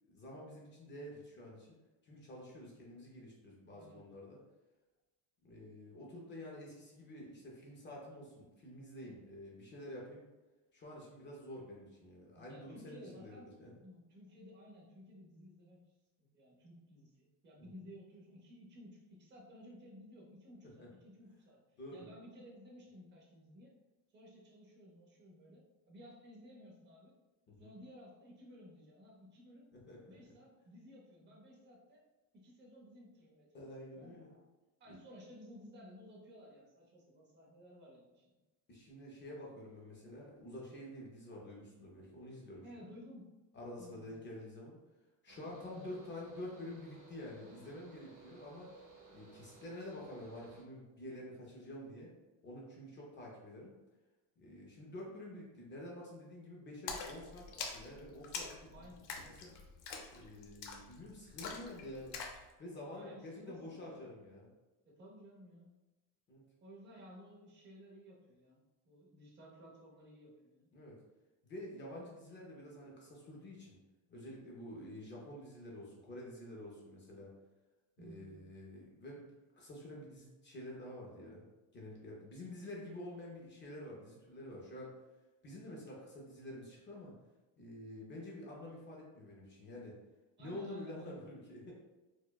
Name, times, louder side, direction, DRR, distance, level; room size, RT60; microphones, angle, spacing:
voice 1, 0.1-1.8 2.0-4.4 5.4-10.3 10.7-13.7 17.6-17.7 20.6-20.9 21.8-22.1 27.5-27.7 29.7-30.0 33.5-34.3 34.9-35.0 38.7-42.9 43.5-44.8 45.2-48.7 49.1-52.2 52.4-53.7 54.4-58.7 59.1-59.6 60.1-62.2 62.6-64.5 66.3-66.4 70.7-71.0 71.4-73.8 74.1-77.3 78.0-81.5 81.7-85.0 85.4-87.2 87.6-90.0 90.4-91.7, left 1 dB, 25° left, -3 dB, 0.3 m, -49 dB
voice 2, 3.7-4.0 12.4-13.5 13.8-15.8 16.2-18.9 19.2-21.6 21.9-23.7 24.1-25.6 25.9-27.1 27.6-29.7 30.1-32.0 32.4-33.7 33.9-34.4 34.8-38.3 42.6-43.4 43.8-44.2 58.7-59.1 62.9-64.1 64.9-65.7 66.6-70.7 78.0-78.4 90.4-91.2, equal, 25° right, -2 dB, 0.6 m, -56 dB
Mechanical fan, 45.3-50.6, right 4 dB, 40° right, 1.0 m, -59 dB
Splash splatter, 56.9-62.4, left 5 dB, 85° left, 0.7 m, -45 dB
4.4 x 2.1 x 2.2 m, 1.1 s
cardioid pair, 160°, 49 cm